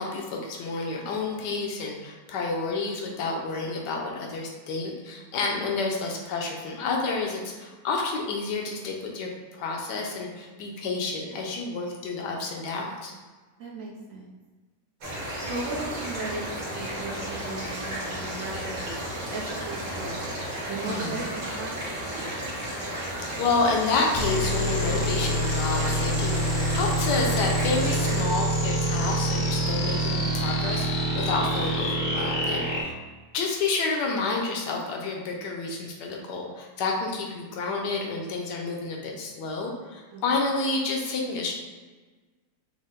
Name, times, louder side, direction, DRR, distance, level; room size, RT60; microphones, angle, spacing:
voice 1, 0.0-13.1 20.9-21.2 23.4-33.0 33.3-41.5, left 3 dB, 85° left, 0 dB, 1.2 m, -29 dB
voice 2, 5.5-5.8 13.6-14.3 15.5-19.0 19.3-20.3 20.7-22.3 40.1-40.2, right 2 dB, 65° right, -3 dB, 1.0 m, -37 dB
sound 1, 15.0-28.2, right 1 dB, 80° right, 1.7 m, -33 dB
sound 2, 24.1-32.8, right 1 dB, 65° left, 0.3 m, -26 dB
5.3 x 2.1 x 3.7 m, 1.3 s
omnidirectional pair, 1.8 m